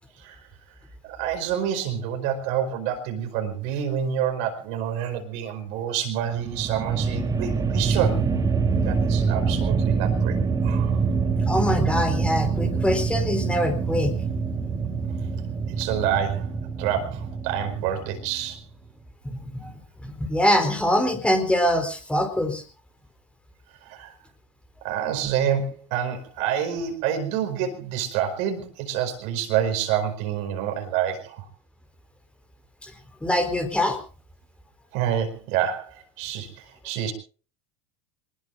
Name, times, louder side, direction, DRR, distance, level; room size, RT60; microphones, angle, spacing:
voice 1, 1.0-8.4 8.8-10.4 10.6-11.0 15.7-16.5 16.8-18.6 23.8-24.1 24.8-31.5 34.9-36.5 36.8-37.1, right 9 dB, 55° right, 6 dB, 4.8 m, -27 dB
sound 1, 6.3-18.6, right 5 dB, 20° right, 3.4 m, -25 dB
voice 2, 11.5-14.1 19.2-19.7 20.0-22.6 32.8-32.9 33.2-34.0, left 1 dB, 5° left, 5 dB, 4.2 m, -24 dB
26.5 x 20.5 x 2.6 m, 0.38 s
figure-of-eight pair, 75°, 15 cm